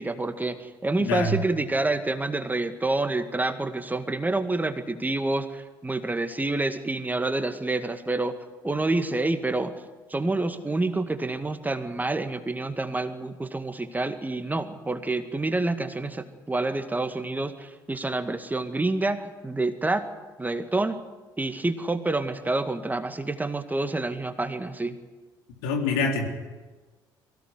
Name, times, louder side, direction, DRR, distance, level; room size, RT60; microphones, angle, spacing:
voice 1, 0.0-8.4 8.6-9.7 10.1-20.1 20.4-21.0 21.4-25.0, right 2 dB, 15° right, 8 dB, 2.0 m, -28 dB
voice 2, 1.0-1.4 25.6-26.2, left 3 dB, 70° left, 2 dB, 3.9 m, -25 dB
23.0 x 17.0 x 9.7 m, 1.2 s
hypercardioid pair, 55°, 12 cm